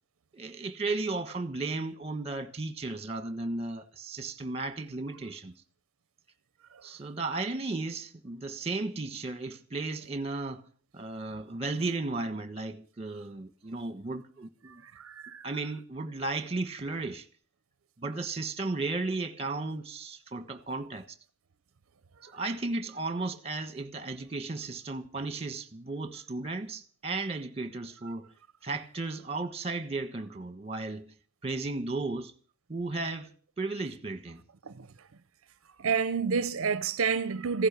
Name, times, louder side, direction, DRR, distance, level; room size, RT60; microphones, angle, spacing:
voice 1, 0.3-5.5 6.8-10.7 10.9-14.8 15.4-17.3 18.0-21.2 22.2-28.3 28.6-31.1 31.4-32.3 32.7-33.3 33.6-34.4, right 3 dB, 25° right, 1.4 m, -35 dB
voice 2, 14.7-15.5 22.2-22.4 34.6-35.1 35.8-37.7, right 5 dB, 70° right, 0.6 m, -30 dB
15.5 x 11.0 x 6.9 m
head